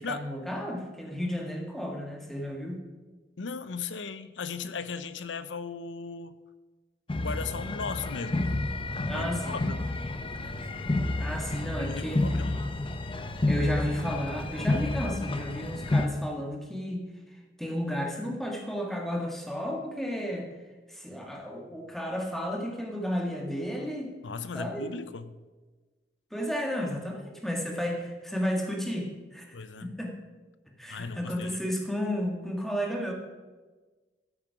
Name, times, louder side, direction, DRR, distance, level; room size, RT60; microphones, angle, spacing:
voice 1, 0.0-2.8 9.0-9.6 11.2-12.3 13.5-20.5 20.9-24.1 24.5-24.9 26.3-30.2 30.8-33.1, equal, ahead, 0 dB, 1.8 m, -33 dB
voice 2, 3.4-6.4 7.2-8.5 9.1-9.9 11.8-12.6 24.2-25.4 29.5-29.9 30.9-31.5, left 5 dB, 90° left, 13 dB, 0.7 m, -37 dB
sound 1, 7.1-16.1, left 2 dB, 30° left, 0.7 m, -30 dB
13.0 x 7.5 x 5.0 m, 1.3 s
head